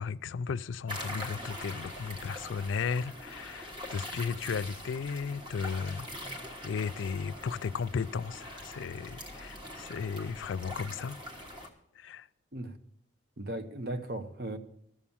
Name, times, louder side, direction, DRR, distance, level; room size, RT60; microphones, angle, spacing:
voice 1, 0.0-6.1 6.6-11.2 12.0-12.3, left 5 dB, 90° left, 0.4 m, -35 dB
sound 1, 0.9-11.7, left 1 dB, 25° right, 1.4 m, -43 dB
voice 2, 13.4-14.6, right 1 dB, 55° right, 1.0 m, -37 dB
13.0 x 7.3 x 7.1 m
head